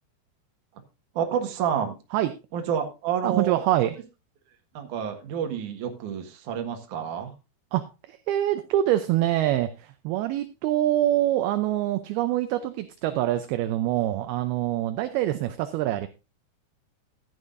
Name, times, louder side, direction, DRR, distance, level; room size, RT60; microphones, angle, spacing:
voice 1, 1.1-1.9 2.5-3.6 4.7-7.3, right 8 dB, 55° right, 5 dB, 2.5 m, -29 dB
voice 2, 3.2-4.0 7.7-16.1, right 13 dB, 80° right, 9 dB, 2.3 m, -25 dB
14.0 x 11.0 x 2.6 m, 0.28 s
omnidirectional pair, 5.1 m